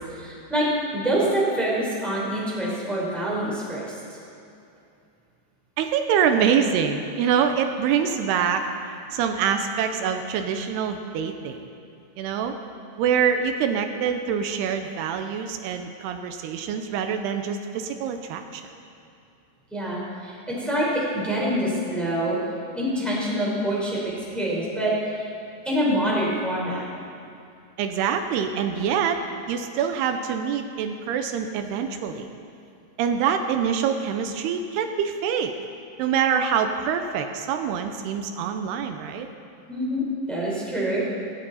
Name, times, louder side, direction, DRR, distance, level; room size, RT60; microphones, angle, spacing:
voice 1, 0.1-3.9 19.7-22.4 22.7-25.3 25.6-26.8 39.7-41.1, equal, ahead, -6 dB, 3.6 m, -26 dB
voice 2, 5.8-11.6 12.2-12.5 13.0-18.6 27.8-29.2 29.5-32.3 33.0-35.5 36.0-39.3, right 7 dB, 85° right, 6 dB, 2.7 m, -25 dB
17.0 x 16.5 x 4.2 m, 2.6 s
omnidirectional pair, 4.7 m